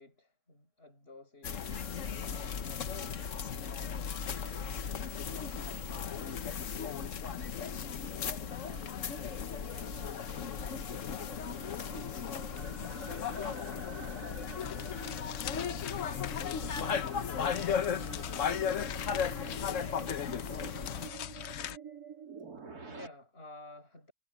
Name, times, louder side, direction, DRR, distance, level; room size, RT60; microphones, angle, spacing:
voice 1, 0.0-1.6 2.2-2.6 3.0-3.1 22.8-24.1, left 2 dB, 35° left, 8.2 m, -54 dB
sound 1, 1.4-21.1, left 7 dB, 50° left, 1.3 m, -36 dB
voice 2, 2.9-3.3 8.6-10.3 10.7-13.5 13.9-18.2, right 4 dB, 75° right, 6.1 m, -62 dB
sound 2, 8.0-23.1, right 6 dB, 60° right, 3.6 m, -49 dB
sound 3, 14.6-21.8, left 11 dB, 75° left, 0.6 m, -43 dB
omnidirectional pair, 1.9 m